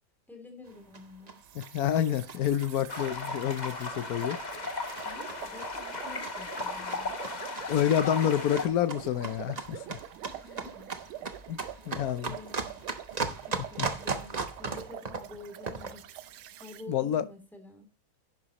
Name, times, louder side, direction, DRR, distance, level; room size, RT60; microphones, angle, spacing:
voice 1, 0.3-1.4 5.0-7.1 10.2-11.0 11.5-11.6 12.2-12.9 13.2-16.2 16.5-17.9, left 3 dB, ahead, 2.8 m, -49 dB
sound 1, 0.7-16.1, right 4 dB, 35° right, 0.6 m, -39 dB
sound 2, 1.4-16.8, right 12 dB, 80° right, 1.5 m, -46 dB
voice 2, 1.5-4.4 7.7-10.0 11.5-11.6 11.9-12.3 13.8-13.9 16.9-17.2, left 10 dB, 65° left, 0.9 m, -28 dB
sound 3, 2.9-8.7, left 3 dB, 25° left, 1.1 m, -36 dB
11.0 x 9.7 x 3.0 m
omnidirectional pair, 2.2 m